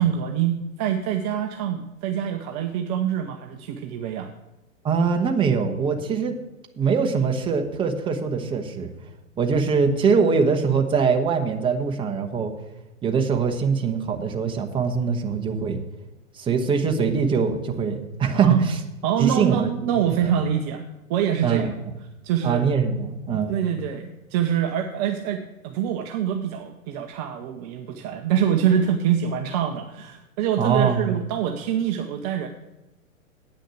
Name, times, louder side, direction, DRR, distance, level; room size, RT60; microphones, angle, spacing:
voice 1, 0.0-4.3 18.3-18.7 19.0-20.8 21.1-21.7 22.2-22.7 23.3-32.5, right 9 dB, 30° right, 5 dB, 0.7 m, -25 dB
voice 2, 4.8-6.4 6.8-8.9 9.4-12.5 13.0-15.8 16.3-18.7 19.2-19.7 20.2-20.3 21.4-21.7 22.4-23.6 30.6-31.2, right 5 dB, 10° right, 4 dB, 1.0 m, -22 dB
9.0 x 6.4 x 8.3 m, 1.0 s
figure-of-eight pair, 110°, 41 cm